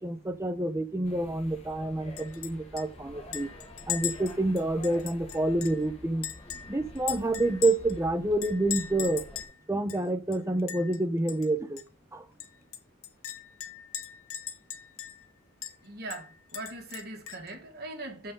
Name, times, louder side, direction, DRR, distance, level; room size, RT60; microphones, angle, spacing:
voice 1, 0.0-3.5 3.9-6.3 6.7-9.4 9.7-11.8 12.1-12.2, right 2 dB, 15° right, 0.7 m, -28 dB
sound 1, 1.0-9.4, left 1 dB, 30° left, 1.8 m, -48 dB
Chink clink, 2.2-2.5 2.8-2.9 3.3-5.8 6.2-8.0 8.4-9.5 9.9-10.0 10.3-11.0 11.3-11.5 11.8-11.9 12.4-15.3 15.6-15.7 16.1-17.5, left 10 dB, 80° left, 0.9 m, -38 dB
voice 2, 15.8-18.3, right 2 dB, 50° right, 2.3 m, -40 dB
6.9 x 5.6 x 5.3 m
head